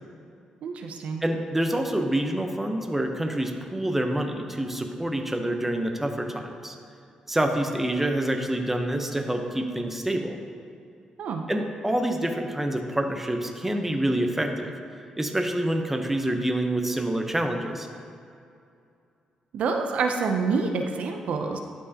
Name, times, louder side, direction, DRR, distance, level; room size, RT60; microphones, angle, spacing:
voice 1, 0.6-1.2 11.2-11.4 19.5-21.6, right 4 dB, 75° right, 4 dB, 0.5 m, -27 dB
voice 2, 1.2-6.8 7.3-10.4 11.5-14.7 15.2-17.9, right 1 dB, 10° right, 4 dB, 0.8 m, -27 dB
11.5 x 4.6 x 2.8 m, 2.5 s
cardioid pair, 70°, 2 cm